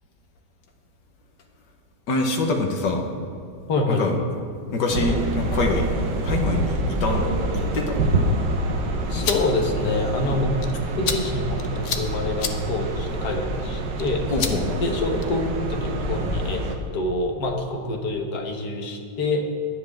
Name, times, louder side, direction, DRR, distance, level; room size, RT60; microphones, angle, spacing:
voice 1, 2.1-3.0 3.9-4.1 4.7-5.9 6.2-8.0 9.1-9.3 10.2-10.4 14.3-14.8, left 3 dB, 90° left, 2 dB, 1.9 m, -25 dB
voice 2, 3.7-4.0 9.1-10.5 11.0-14.2 14.8-16.6 16.9-19.5, left 2 dB, 70° left, 3 dB, 1.8 m, -26 dB
sound 1, 4.9-16.8, right 2 dB, 80° right, 1.6 m, -26 dB
sound 2, 9.0-15.5, left 6 dB, 55° left, 1.0 m, -34 dB
20.5 x 7.7 x 3.6 m, 2.4 s
omnidirectional pair, 1.8 m